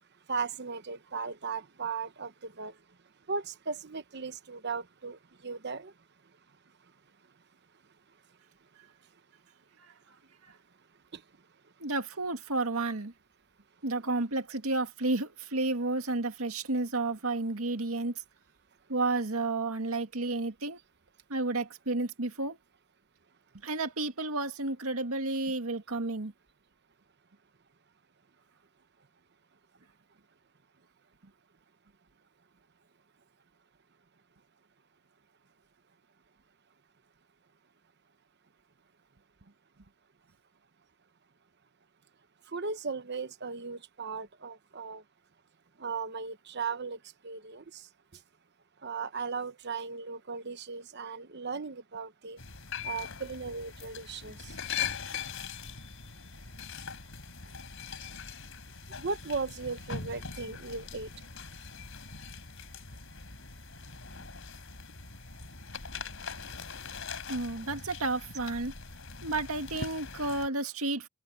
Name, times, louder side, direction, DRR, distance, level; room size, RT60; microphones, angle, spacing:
voice 1, 0.3-2.7 3.3-5.9 11.1-11.2 42.5-45.0 45.8-47.0 47.2-47.8 48.8-52.4 52.8-54.5 59.0-61.1, right 4 dB, 50° right, 1.0 m, -37 dB
voice 2, 11.8-13.1 13.8-18.1 18.9-20.8 21.3-22.6 23.6-26.3 67.3-68.7 69.2-71.1, right 2 dB, 80° right, 2.1 m, -31 dB
sound 1, 52.4-70.5, left 6 dB, 65° left, 3.9 m, -41 dB
head